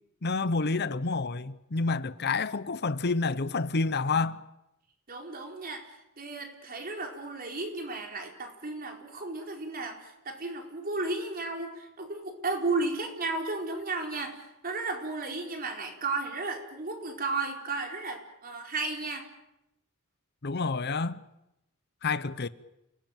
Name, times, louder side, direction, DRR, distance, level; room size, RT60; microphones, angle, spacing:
voice 1, 0.2-4.4 20.4-21.2 22.0-22.5, left 3 dB, 50° left, 0.9 m, -29 dB
voice 2, 5.1-19.3, right 3 dB, 45° right, 4.5 m, -34 dB
29.0 x 19.0 x 9.0 m
head